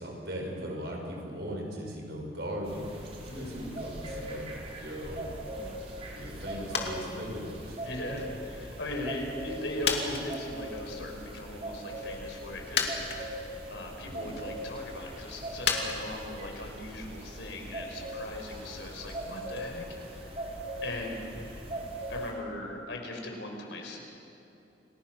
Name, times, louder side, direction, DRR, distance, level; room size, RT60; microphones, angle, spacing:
voice 1, 0.0-2.9 3.2-5.3 6.2-7.8 8.3-8.4 14.0-14.3 21.6-21.7, equal, 65° right, 0 dB, 5.9 m, -39 dB
sound 1, 2.6-22.3, right 1 dB, 35° right, 4.3 m, -40 dB
voice 2, 3.3-3.7 7.8-8.3 8.5-20.5 20.8-21.3 22.1-24.0, left 1 dB, 85° left, 2 dB, 4.8 m, -39 dB
sound 2, 6.7-7.1 7.3-8.5 9.0-9.1 9.8-10.9 11.3-11.5 12.4-12.5 12.7-13.6 14.0-14.6 15.6-19.7 20.0-20.1, left 6 dB, 65° left, 2.5 m, -34 dB
29.5 x 20.0 x 6.3 m, 2.8 s
head